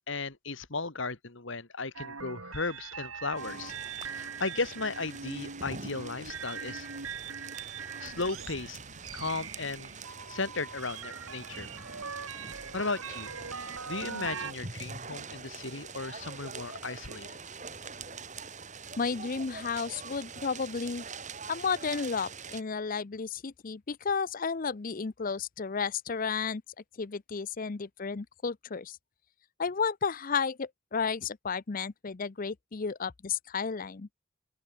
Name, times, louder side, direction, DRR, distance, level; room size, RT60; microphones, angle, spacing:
voice 1, 0.1-3.7 4.0-6.9 8.0-8.8 9.1-9.9 10.3-11.7 12.7-13.3 13.9-17.3, left 3 dB, 60° left, 1.9 m, -35 dB
sound 1, 1.9-14.5, right 6 dB, 75° right, 2.6 m, -42 dB
sound 2, 3.4-22.6, right 5 dB, 35° right, 4.6 m, -44 dB
voice 2, 19.0-21.1 21.5-26.6 27.0-29.0 29.6-34.1, left 5 dB, 40° left, 0.5 m, -32 dB
open air
head